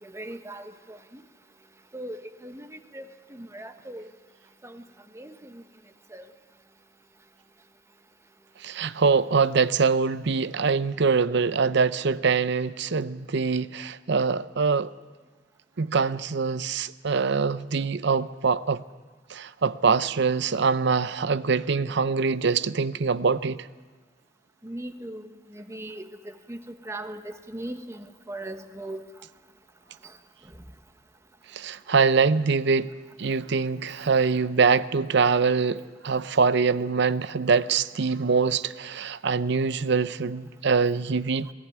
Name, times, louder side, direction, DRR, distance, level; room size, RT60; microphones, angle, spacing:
voice 1, 0.0-1.2 1.9-4.1 4.6-4.8 5.1-5.6 6.1-6.3 24.6-29.0 30.0-30.1 30.5-30.6 41.4-41.5, right 1 dB, 15° right, 1.2 m, -39 dB
voice 2, 8.6-14.9 15.8-18.8 19.3-23.7 31.5-32.9 33.2-41.5, right 5 dB, 65° right, 0.7 m, -24 dB
21.0 x 15.5 x 9.5 m
head